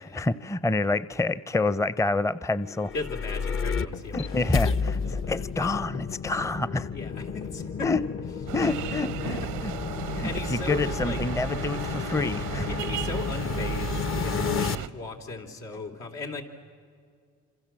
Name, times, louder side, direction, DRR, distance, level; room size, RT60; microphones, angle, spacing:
voice 1, 0.0-2.9 4.1-6.9 7.8-8.0 8.5-9.7 10.2-12.7, left 3 dB, 10° left, 17 dB, 0.6 m, -28 dB
sound 1, 2.7-3.2 3.5-6.7 7.0-10.6 11.5-12.0, left 6 dB, 60° left, 1.2 m, -46 dB
sound 2, 2.7-14.8, left 6 dB, 45° left, 0.9 m, -32 dB
voice 2, 2.9-5.4 6.9-7.9 8.8-8.9 10.0-11.2 12.6-16.4, left 3 dB, 85° left, 1 dB, 3.4 m, -37 dB
sound 3, 8.5-14.9, right 11 dB, 90° right, 0.8 m, -35 dB
27.5 x 26.5 x 7.5 m, 2.1 s
cardioid pair, 90°, 30 cm